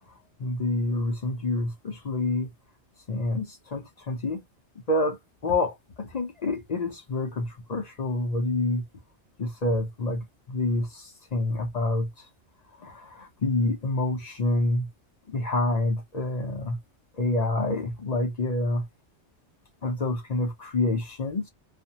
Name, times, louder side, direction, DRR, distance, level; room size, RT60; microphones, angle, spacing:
voice 1, 0.4-2.5 3.1-4.4 4.9-8.8 9.4-12.3 12.8-14.9 15.3-16.8 17.1-18.9 19.8-21.5, left 2 dB, 45° left, 0.6 m, -27 dB
2.5 x 2.1 x 2.7 m
omnidirectional pair, 1.2 m